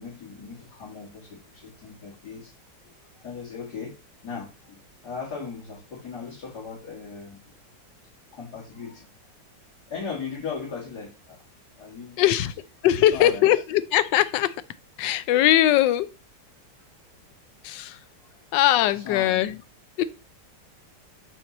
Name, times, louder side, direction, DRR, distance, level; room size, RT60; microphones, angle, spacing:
voice 1, 0.0-2.5 3.2-7.4 8.3-9.1 9.9-11.4 11.8-12.2 13.1-13.5 18.2-18.3 18.9-19.4, left 5 dB, 65° left, 2.5 m, -38 dB
voice 2, 12.2-12.5 12.8-14.6 15.0-16.1 17.6-18.0 18.5-19.6 20.0-20.1, left 13 dB, 85° left, 1.2 m, -21 dB
5.8 x 4.5 x 4.1 m
omnidirectional pair, 1.9 m